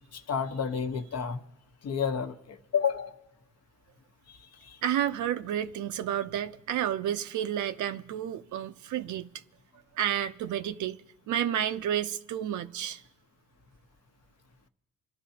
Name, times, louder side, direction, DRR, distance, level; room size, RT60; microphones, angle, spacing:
voice 1, 0.1-1.4 1.8-3.1 4.3-4.8, left 6 dB, 55° left, 1.0 m, -31 dB
voice 2, 4.8-9.3 10.0-11.0 11.3-13.0, right 10 dB, 75° right, 0.6 m, -30 dB
26.0 x 12.0 x 2.8 m
cardioid pair, 90°, 30 cm